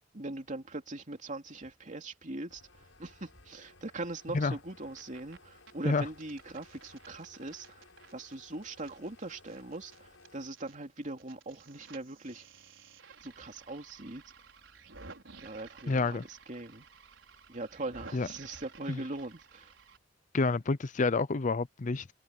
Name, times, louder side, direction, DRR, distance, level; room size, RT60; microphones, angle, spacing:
voice 1, 0.1-7.8 8.1-12.4 13.2-14.2 15.4-16.9 17.5-19.7, right 2 dB, 40° right, 2.9 m, -41 dB
sound 1, 2.5-10.5, left 3 dB, 90° left, 7.2 m, -59 dB
sound 2, 4.7-5.4 5.7-10.8 11.0-20.0, right 4 dB, 85° right, 5.3 m, -54 dB
voice 2, 15.9-16.2 18.1-18.3 18.9-19.0 20.3-22.0, left 3 dB, 40° left, 0.6 m, -28 dB
head